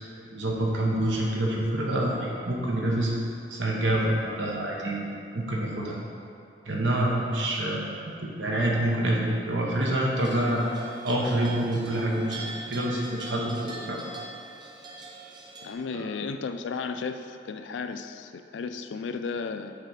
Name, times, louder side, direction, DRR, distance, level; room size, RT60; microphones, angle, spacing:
voice 1, 0.3-3.1 3.5-5.0 5.3-6.0 6.6-10.7 11.0-14.0 15.9-16.0, right 1 dB, 90° right, -2 dB, 1.0 m, -27 dB
sound 1, 10.2-15.7, right 3 dB, 25° right, 0.6 m, -42 dB
voice 2, 15.6-19.8, left 5 dB, 85° left, 9 dB, 0.4 m, -34 dB
6.7 x 4.0 x 4.9 m, 2.6 s
head